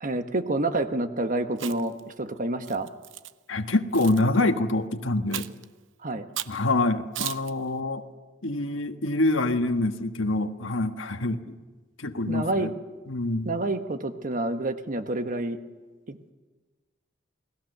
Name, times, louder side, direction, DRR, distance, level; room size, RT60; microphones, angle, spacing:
voice 1, 0.0-2.9 6.0-6.3 12.3-12.7 13.4-15.6 16.1-16.2, right 2 dB, 45° right, 8 dB, 1.3 m, -28 dB
Chewing mastication, 1.5-2.0 2.7-3.3 3.9-4.2 5.3-5.6 6.4-6.6 7.1-7.5, right 11 dB, 70° right, 0.7 m, -35 dB
voice 2, 3.5-5.5 6.5-8.0 8.4-11.6 12.0-12.7 13.1-13.5, left 2 dB, 80° left, 7 dB, 1.4 m, -26 dB
28.5 x 19.5 x 6.7 m, 1.3 s
head